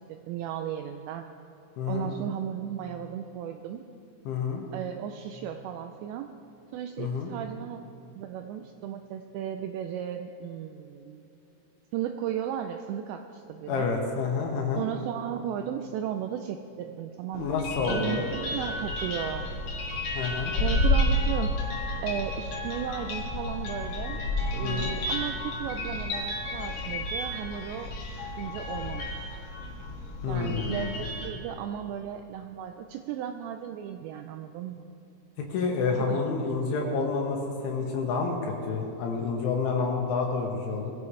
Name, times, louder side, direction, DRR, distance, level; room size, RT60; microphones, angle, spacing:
voice 1, 0.1-1.2 1.9-3.8 4.7-6.3 6.7-7.8 8.2-11.2 11.9-13.9 14.8-19.4 20.6-21.5 22.0-24.2 24.5-27.9 28.4-29.3 30.3-34.9 35.9-36.2, right 10 dB, 90° right, 6 dB, 2.5 m, -35 dB
voice 2, 1.8-2.1 4.3-4.6 7.0-7.3 13.7-14.8 17.3-18.3 20.2-20.5 24.6-24.9 30.2-30.9 35.4-40.9, left 4 dB, 80° left, 0 dB, 3.5 m, -29 dB
sound 1, 17.3-31.3, left 1 dB, 50° left, 3.0 m, -31 dB
22.0 x 15.5 x 3.3 m, 2.9 s
omnidirectional pair, 5.7 m